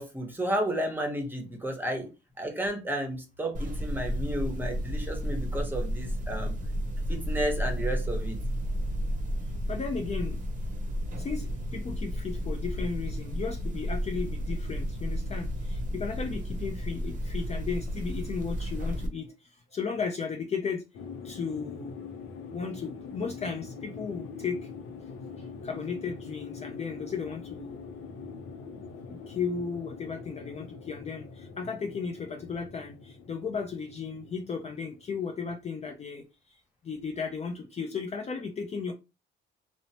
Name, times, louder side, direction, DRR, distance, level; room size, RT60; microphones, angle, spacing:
voice 1, 0.0-2.1 2.4-6.6 7.1-8.4, right 1 dB, 10° right, 0.9 m, -32 dB
sound 1, 3.5-19.1, equal, 40° right, 0.7 m, -32 dB
voice 2, 9.7-10.4 11.2-20.8 21.2-21.9 22.5-24.7 25.0-25.1 25.4-27.8 29.1-38.9, left 5 dB, 35° left, 0.4 m, -35 dB
sound 2, 20.9-35.8, left 5 dB, 85° left, 0.5 m, -44 dB
2.9 x 2.0 x 2.7 m
cardioid pair, 90°, 20 cm